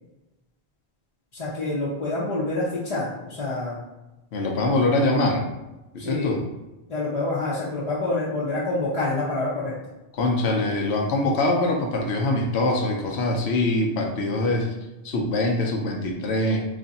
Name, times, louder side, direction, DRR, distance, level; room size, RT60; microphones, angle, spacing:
voice 1, 1.3-3.8 6.0-6.4 6.9-9.7, left 2 dB, 40° left, -8 dB, 0.7 m, -27 dB
voice 2, 4.3-5.4 5.9-6.4 10.1-14.7 15.0-16.7, left 2 dB, 80° left, 1 dB, 0.9 m, -23 dB
3.2 x 2.6 x 4.0 m, 1.0 s
omnidirectional pair, 1.1 m